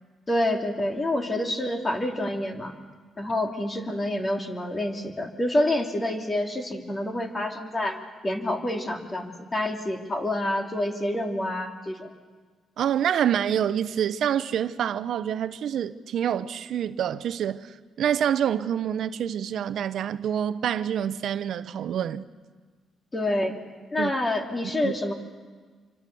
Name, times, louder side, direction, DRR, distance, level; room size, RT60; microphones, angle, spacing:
voice 1, 0.3-2.7 3.2-12.1 23.1-23.6 23.9-25.1, left 1 dB, 25° left, 3.2 m, -27 dB
voice 2, 12.8-22.3 24.0-24.1 24.8-24.9, right 9 dB, 70° right, 0.8 m, -27 dB
27.0 x 25.0 x 7.0 m
cardioid pair, 90°, 0 cm